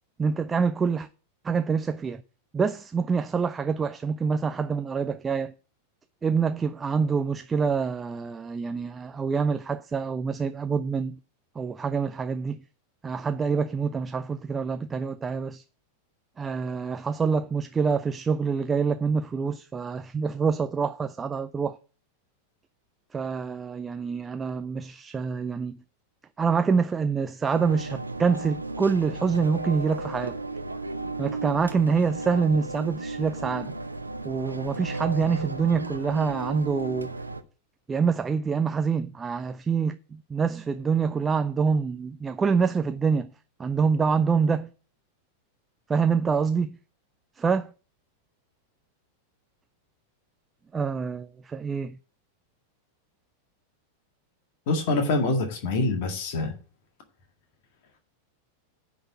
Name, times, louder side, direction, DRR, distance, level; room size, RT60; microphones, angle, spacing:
voice 1, 0.2-1.1 1.4-2.2 2.5-5.5 6.2-11.2 11.6-12.6 13.0-15.6 16.4-21.8 23.1-25.8 26.4-30.4 31.2-33.7 34.2-37.1 37.9-43.3 43.6-44.7 45.9-46.7 47.4-47.7 50.7-52.0, right 5 dB, 15° right, 0.4 m, -26 dB
sound 1, 27.5-37.4, right 2 dB, 80° right, 0.6 m, -34 dB
voice 2, 54.7-56.5, left 3 dB, 50° left, 1.9 m, -25 dB
10.0 x 4.0 x 7.2 m
figure-of-eight pair, 90°, 0 cm